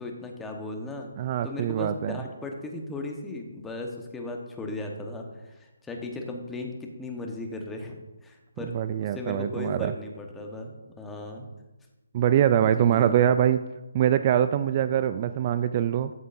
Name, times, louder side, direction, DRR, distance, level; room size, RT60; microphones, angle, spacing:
voice 1, 0.0-1.1 1.4-11.5 12.6-13.1 14.7-14.9, left 2 dB, 10° left, 2 dB, 1.2 m, -37 dB
voice 2, 1.2-2.2 8.7-9.9 12.1-13.6 13.9-16.1, right 10 dB, 35° right, 12 dB, 0.3 m, -23 dB
13.0 x 7.9 x 2.6 m, 1.1 s
figure-of-eight pair, 150°, 0 cm